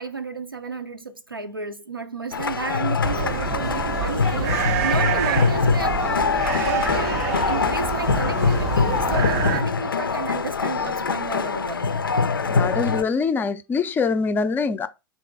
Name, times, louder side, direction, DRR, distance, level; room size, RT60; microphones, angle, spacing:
voice 1, 0.0-11.9, right 3 dB, 90° right, 0.6 m, -32 dB
sound 1, 2.3-13.0, left 5 dB, 80° left, 0.4 m, -23 dB
sound 2, 3.0-9.6, right 8 dB, 45° right, 0.5 m, -27 dB
voice 2, 12.5-14.9, left 5 dB, 15° left, 0.4 m, -24 dB
4.1 x 3.6 x 3.5 m
figure-of-eight pair, 95°, 11 cm